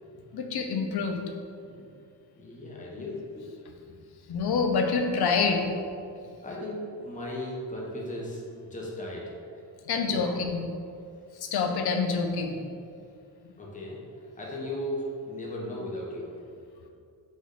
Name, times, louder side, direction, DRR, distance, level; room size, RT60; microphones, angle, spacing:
voice 1, 0.3-1.2 4.3-5.6 9.9-10.6 11.4-12.5, left 5 dB, 60° left, 4 dB, 0.6 m, -26 dB
voice 2, 2.3-3.5 3.9-4.0 6.4-9.6 10.1-10.3 13.6-16.3, left 1 dB, 15° left, -4 dB, 0.9 m, -37 dB
5.3 x 2.5 x 3.9 m, 2.4 s
cardioid pair, 80°, 44 cm